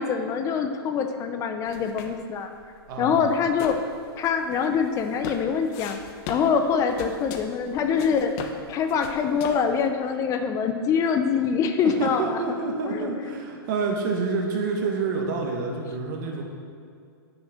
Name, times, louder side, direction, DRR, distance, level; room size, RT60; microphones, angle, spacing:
voice 1, 0.0-2.5 3.0-3.8 4.2-6.0 6.3-8.3 8.7-12.4 12.9-13.1, left 6 dB, 25° left, 7 dB, 0.6 m, -24 dB
sound 1, 1.7-9.9, left 6 dB, 40° left, 1.0 m, -39 dB
voice 2, 2.9-3.3 6.7-7.1 11.8-16.4, right 4 dB, 50° right, 0 dB, 1.8 m, -28 dB
9.4 x 6.3 x 6.4 m, 2.4 s
hypercardioid pair, 135°, 13 cm